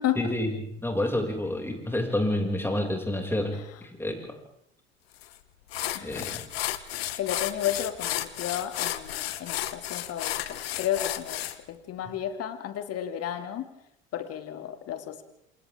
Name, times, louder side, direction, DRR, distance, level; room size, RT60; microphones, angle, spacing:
voice 1, 0.2-4.4 6.0-6.4, left 1 dB, 5° left, 1 dB, 6.5 m, -29 dB
sound 1, 5.2-5.3 5.7-11.6, left 13 dB, 75° left, 1.3 m, -32 dB
voice 2, 5.9-6.3 7.2-13.7 14.1-15.2, left 10 dB, 50° left, 8 dB, 2.8 m, -32 dB
28.0 x 27.5 x 3.8 m, 0.75 s
hypercardioid pair, 65°, 31 cm